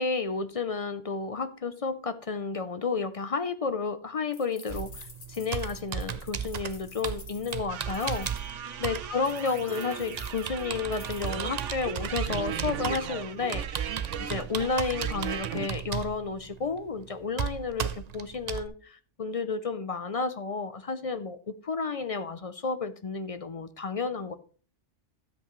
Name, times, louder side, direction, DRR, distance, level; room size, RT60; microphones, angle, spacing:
voice 1, 0.0-24.4, left 4 dB, 50° left, 0.4 m, -32 dB
sound 1, 4.3-8.5 9.2-11.3, left 4 dB, 85° left, 1.9 m, -50 dB
Computer keyboard, 4.7-18.7, right 8 dB, 50° right, 0.5 m, -36 dB
sound 2, 7.7-15.7, right 8 dB, 80° right, 1.1 m, -38 dB
12.5 x 7.9 x 3.1 m
omnidirectional pair, 1.3 m